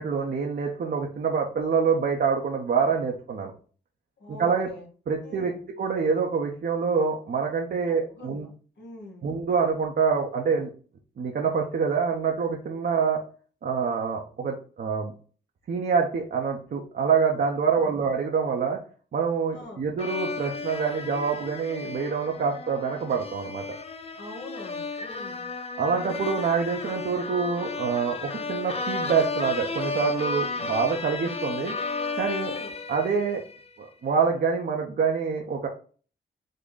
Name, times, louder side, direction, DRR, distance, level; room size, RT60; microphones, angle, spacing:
voice 1, 0.0-3.5 4.3-4.7 5.1-8.5 9.2-10.7 11.2-13.2 13.6-15.1 15.7-18.8 19.1-23.6 25.8-31.7 32.2-32.5 32.9-33.4 33.8-35.7, right 5 dB, 60° right, 0 dB, 0.8 m, -26 dB
voice 2, 4.2-4.9 5.2-5.7 8.2-8.5 8.8-9.3 17.8-18.0 19.5-19.9 24.2-25.5 32.4-32.8, left 2 dB, 75° left, 1 dB, 1.2 m, -43 dB
sound 1, 20.0-33.7, left 4 dB, 35° left, 0.5 m, -33 dB
3.8 x 2.2 x 3.7 m, 0.39 s
cardioid pair, 60°, 18 cm